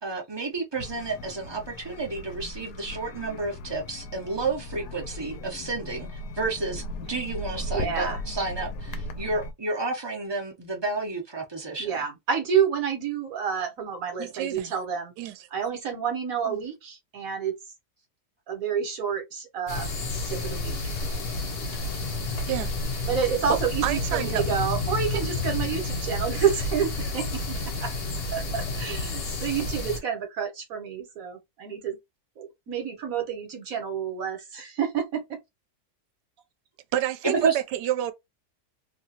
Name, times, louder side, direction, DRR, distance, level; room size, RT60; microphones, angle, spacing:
voice 1, 0.0-12.0 37.2-37.6, right 3 dB, 35° right, 0.4 m, -31 dB
sound 1, 0.8-9.5, left 1 dB, 75° left, 1.1 m, -37 dB
voice 2, 7.7-8.2 11.8-15.1 15.5-17.5 18.5-21.0 23.1-27.5 27.8-27.9 28.3-32.0 32.4-35.2, right 7 dB, 60° right, 1.3 m, -29 dB
voice 3, 14.2-14.8 15.2-15.3 16.5-16.6 22.5-22.7 23.5-24.4 36.9-38.1, right 12 dB, 85° right, 1.2 m, -29 dB
sound 2, 19.7-30.0, left 2 dB, 50° left, 1.2 m, -30 dB
2.9 x 2.4 x 2.8 m
omnidirectional pair, 1.8 m